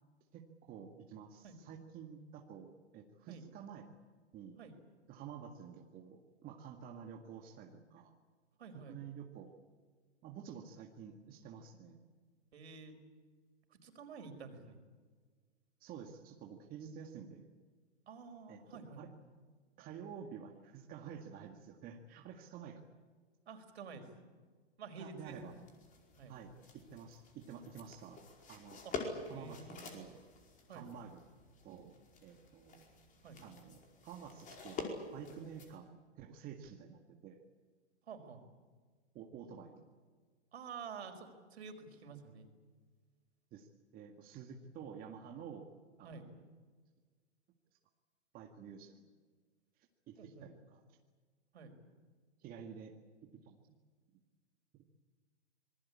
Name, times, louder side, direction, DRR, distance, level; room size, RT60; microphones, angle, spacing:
voice 1, 0.3-3.9 4.3-4.6 5.1-8.1 8.9-9.5 10.2-12.0 15.8-17.5 18.5-19.1 19.8-22.8 25.0-25.6 26.3-28.2 28.5-28.8 29.3-30.2 30.7-31.2 31.6-31.9 32.2-32.8 33.4-37.4 39.1-39.9 43.5-43.7 43.9-45.7 46.0-46.3 48.3-49.1 50.1-50.8 52.4-52.9 53.2-53.6 54.1-54.2, right 7 dB, 25° right, 2 dB, 1.9 m, -50 dB
voice 2, 8.6-9.0 12.5-13.0 13.7-14.8 18.1-19.0 23.5-24.1 24.8-25.6 26.2-26.4 28.8-28.9 29.3-29.8 30.7-30.8 33.2-33.4 38.1-38.4 40.5-42.5 46.0-46.2 50.2-50.5 51.5-51.7, right 5 dB, 65° right, 6 dB, 5.0 m, -50 dB
sound 1, 25.2-35.7, left 4 dB, 20° left, 4.9 m, -48 dB
26.0 x 21.0 x 8.5 m, 1.5 s
hypercardioid pair, 125°, 35 cm